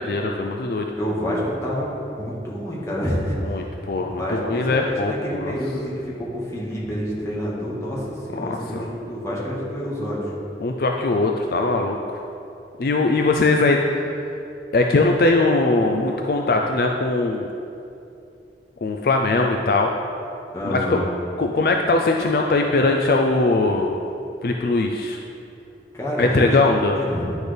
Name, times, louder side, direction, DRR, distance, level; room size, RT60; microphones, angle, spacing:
voice 1, 0.0-0.9 3.4-5.5 8.4-8.8 10.6-12.2 12.8-14.1 14.7-17.5 18.8-19.9 20.6-21.0 21.4-24.0 24.4-25.2 26.2-27.0, left 2 dB, 55° left, 2 dB, 0.4 m, -21 dB
voice 2, 1.0-3.6 4.0-10.3 20.5-21.1 25.9-26.5 26.9-27.4, equal, 15° left, -6 dB, 1.7 m, -28 dB
10.5 x 6.3 x 3.4 m, 2.7 s
head